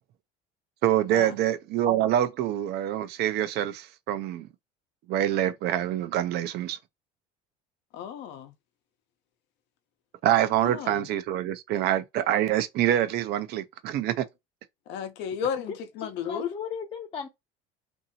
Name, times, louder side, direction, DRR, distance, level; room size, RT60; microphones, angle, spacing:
voice 1, 0.8-4.5 5.1-6.8 10.2-14.2, right 12 dB, 60° right, 0.6 m, -26 dB
voice 2, 7.9-8.5 10.6-11.1 14.9-16.5, left 8 dB, 65° left, 0.8 m, -33 dB
voice 3, 15.6-17.3, left 6 dB, 30° left, 0.6 m, -37 dB
2.7 x 2.7 x 2.7 m
supercardioid pair, 95°, 19 cm